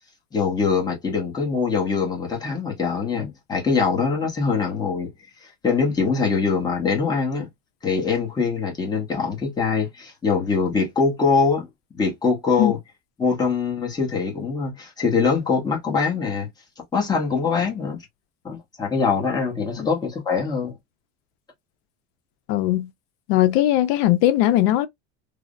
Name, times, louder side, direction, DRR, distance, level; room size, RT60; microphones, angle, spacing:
voice 1, 0.3-5.1 5.6-7.5 7.8-11.7 12.0-12.8 13.2-16.5 16.9-18.0 18.4-20.7, left 5 dB, 15° left, 0.8 m, -23 dB
voice 2, 22.5-22.9 23.3-24.9, left 13 dB, 85° left, 0.5 m, -19 dB
3.2 x 2.0 x 2.3 m
cardioid pair, 170°, 31 cm